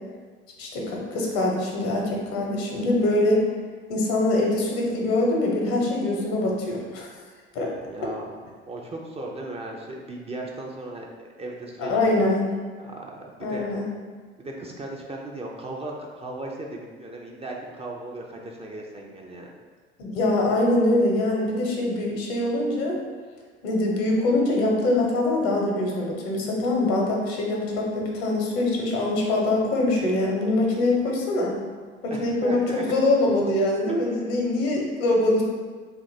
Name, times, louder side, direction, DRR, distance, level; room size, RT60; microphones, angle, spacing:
voice 1, 0.6-3.4 3.9-7.2 7.5-7.7 11.8-12.5 13.4-13.9 20.0-23.0 23.6-31.6 32.0-35.4, left 2 dB, 65° left, -1 dB, 0.9 m, -23 dB
voice 2, 7.8-8.2 8.7-12.2 12.8-13.8 14.4-19.5 32.1-32.9 34.0-34.1, right 2 dB, 20° right, -1 dB, 0.5 m, -37 dB
2.8 x 2.5 x 4.1 m, 1.5 s
hypercardioid pair, 65°, 32 cm